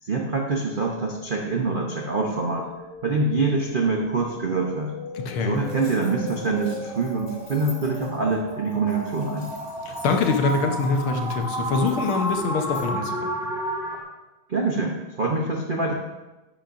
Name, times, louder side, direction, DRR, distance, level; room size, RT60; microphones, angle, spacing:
voice 1, 0.0-2.7 3.0-4.9 5.4-9.5 14.5-15.9, right 3 dB, 85° right, -1 dB, 0.4 m, -25 dB
sound 1, 0.9-14.0, equal, ahead, 1.2 m, -34 dB
voice 2, 5.1-5.6 9.9-13.4, left 4 dB, 80° left, 3 dB, 1.8 m, -24 dB
sound 2, 5.5-12.9, left 1 dB, 25° left, 3.8 m, -49 dB
11.5 x 8.7 x 2.6 m, 1.1 s
omnidirectional pair, 2.3 m